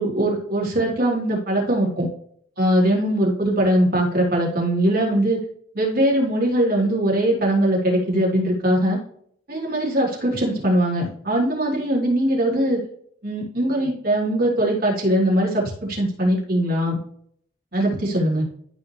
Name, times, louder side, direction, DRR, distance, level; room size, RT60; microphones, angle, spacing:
voice 1, 0.0-2.1 2.6-5.4 5.7-9.0 9.5-12.8 13.2-15.6 15.9-17.0 17.7-18.5, right 1 dB, 50° right, -4 dB, 3.9 m, -21 dB
14.5 x 4.9 x 3.3 m, 0.65 s
head